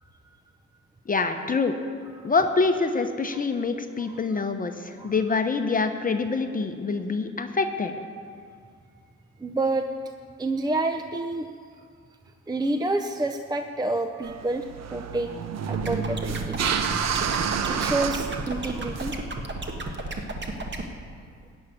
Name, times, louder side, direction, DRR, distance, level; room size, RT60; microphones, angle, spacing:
voice 1, 1.1-1.7 2.2-7.9, left 4 dB, 30° left, 6 dB, 0.9 m, -25 dB
voice 2, 4.1-4.4 5.0-5.1 9.4-9.9 10.4-11.5 12.5-15.3 15.6-17.1 17.6-19.1 19.6-20.1 20.5-20.6, right 2 dB, 15° right, 6 dB, 0.6 m, -29 dB
sound 1, 14.2-19.2, right 7 dB, 60° right, 0.8 m, -29 dB
sound 2, 15.7-20.8, right 2 dB, 35° right, 1.5 m, -33 dB
14.0 x 5.6 x 9.7 m, 2.2 s
cardioid pair, 90°, 30 cm